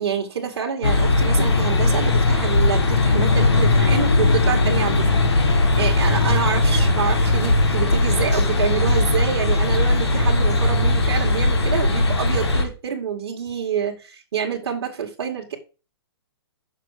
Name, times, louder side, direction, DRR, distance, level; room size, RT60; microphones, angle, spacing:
voice 1, 0.0-15.6, right 7 dB, 65° right, 2.4 m, -27 dB
sound 1, 0.8-12.6, left 2 dB, 85° left, 4.2 m, -19 dB
6.6 x 6.5 x 6.7 m
hypercardioid pair, 140°, 14 cm